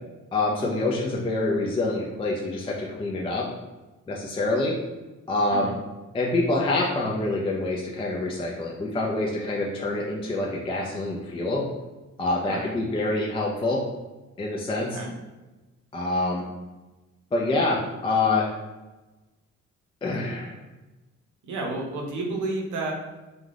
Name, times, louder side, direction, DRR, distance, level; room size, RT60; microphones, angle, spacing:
voice 1, 0.3-3.5 4.1-4.8 5.3-5.7 6.1-11.6 12.2-13.8 14.4-15.0 15.9-16.4 17.3-18.5 20.0-20.6, left 2 dB, 20° left, -2 dB, 0.4 m, -26 dB
voice 2, 14.7-15.1 21.4-22.9, right 2 dB, 80° right, -1 dB, 0.8 m, -31 dB
2.5 x 2.3 x 3.3 m, 1.1 s
cardioid pair, 90°, 30 cm